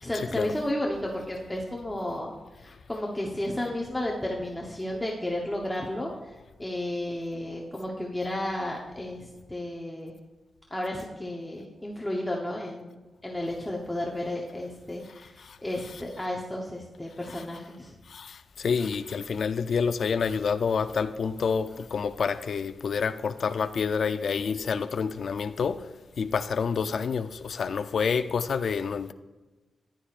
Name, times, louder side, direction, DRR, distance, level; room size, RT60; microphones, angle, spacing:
voice 1, 0.0-10.1 10.7-13.0 13.2-17.9, left 1 dB, 10° left, 1.0 m, -33 dB
voice 2, 18.1-25.8 26.2-29.1, left 6 dB, 55° left, 0.5 m, -28 dB
14.5 x 10.5 x 2.5 m
wide cardioid pair, 165°, 0 cm